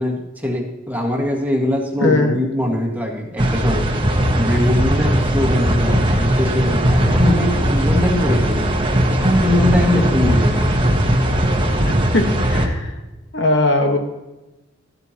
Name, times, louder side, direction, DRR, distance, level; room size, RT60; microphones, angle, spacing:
voice 1, 0.0-3.9 4.4-8.8 9.1-10.7 11.1-11.2, left 1 dB, 10° right, 0 dB, 1.8 m, -22 dB
voice 2, 2.0-2.4 11.9-12.9 13.3-14.0, left 2 dB, 60° left, 4 dB, 1.4 m, -19 dB
sound 1, 3.4-12.7, equal, 25° right, 1.3 m, -18 dB
13.0 x 12.0 x 2.9 m, 1.1 s
head